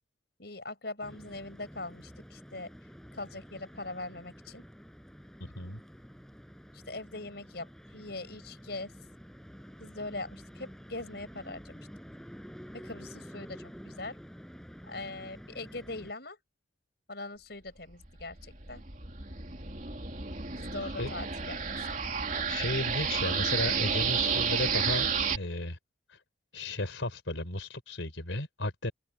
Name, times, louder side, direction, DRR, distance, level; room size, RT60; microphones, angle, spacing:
voice 1, 0.4-2.7 3.1-4.6 6.7-7.7 7.9-8.9 9.8-11.8 12.7-14.2 14.9-16.4 17.1-18.8 20.6-21.9 22.3-22.5, left 2 dB, 55° left, 6.6 m, -41 dB
sound 1, 1.0-16.1, equal, 5° left, 5.4 m, -49 dB
voice 2, 5.4-5.8 21.0-21.1 22.5-25.8 26.1-26.2 26.5-28.9, left 2 dB, 90° left, 4.2 m, -34 dB
sound 2, 18.0-25.4, right 6 dB, 45° right, 2.9 m, -31 dB
open air
head